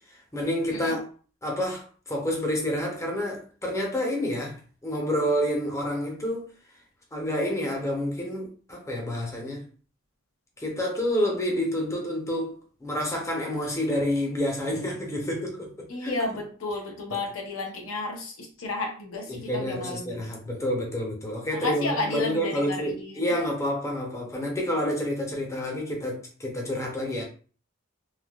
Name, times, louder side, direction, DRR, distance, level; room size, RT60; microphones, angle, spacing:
voice 1, 0.3-1.0 1.4-4.6 4.8-6.5 7.1-9.6 10.6-16.2 19.3-27.2, equal, 15° left, 0.8 m, -29 dB
voice 2, 15.9-20.2 21.5-23.3, left 2 dB, 85° left, 0.8 m, -32 dB
3.3 x 2.4 x 2.4 m
head